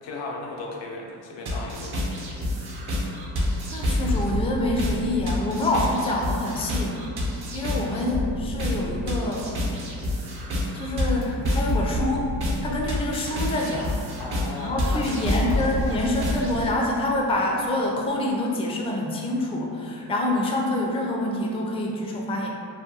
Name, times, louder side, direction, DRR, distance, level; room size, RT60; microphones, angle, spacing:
voice 1, 0.0-2.0 14.2-15.6, left 3 dB, 85° left, -2 dB, 0.6 m, -35 dB
sound 1, 1.5-16.7, left 1 dB, 60° right, 0.7 m, -28 dB
voice 2, 3.7-7.0 7.5-9.5 10.7-12.3 12.6-13.9 14.6-22.5, left 1 dB, 15° left, -1 dB, 0.3 m, -26 dB
2.5 x 2.2 x 2.6 m, 2.3 s
cardioid pair, 70°, 43 cm